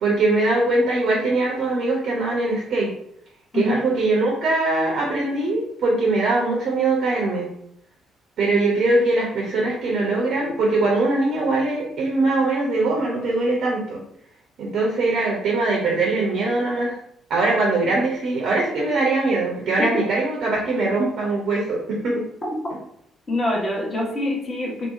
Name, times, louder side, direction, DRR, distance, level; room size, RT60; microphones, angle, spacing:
voice 1, 0.0-2.9 3.5-7.5 8.4-14.0 14.6-17.0 17.3-22.2, right 2 dB, 60° right, -2 dB, 0.5 m, -21 dB
voice 2, 23.3-24.9, left 1 dB, 35° left, -2 dB, 0.8 m, -25 dB
2.7 x 2.0 x 2.4 m, 0.72 s
figure-of-eight pair, 45°, 0 cm